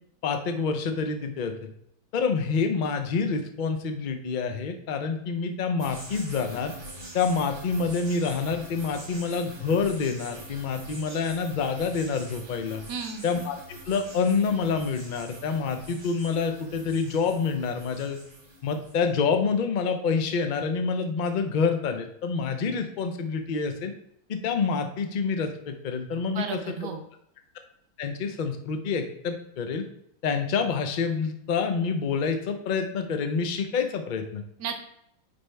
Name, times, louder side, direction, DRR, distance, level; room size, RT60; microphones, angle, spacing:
voice 1, 0.2-1.7 2.1-6.7 7.1-12.8 13.2-18.2 18.6-23.9 24.3-26.8 28.0-29.8 30.2-34.4, left 5 dB, 70° left, 6 dB, 0.4 m, -27 dB
sound 1, 5.8-19.1, right 1 dB, 35° right, 1.3 m, -44 dB
voice 2, 12.9-13.2 26.3-27.0 34.6-34.9, right 6 dB, 75° right, 6 dB, 1.3 m, -33 dB
9.3 x 3.6 x 3.3 m, 0.73 s
omnidirectional pair, 1.8 m